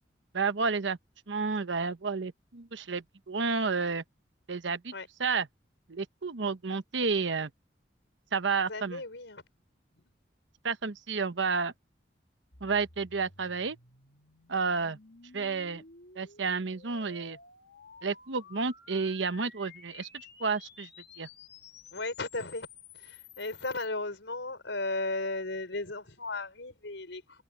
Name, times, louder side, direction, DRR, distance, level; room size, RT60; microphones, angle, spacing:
voice 1, 0.3-1.0 1.3-4.0 4.5-4.9 5.2-5.5 5.9-7.5 8.3-9.0 10.6-11.7 12.6-13.8 14.5-15.0 15.3-15.8 16.1-17.4 18.0-20.1 20.4-20.9 21.2-21.3, right 4 dB, 85° right, 1.0 m, -31 dB
voice 2, 8.7-9.4 21.9-22.7 23.0-27.4, left 2 dB, 85° left, 4.8 m, -35 dB
sound 1, 12.5-23.9, left 6 dB, 65° left, 2.9 m, -53 dB
head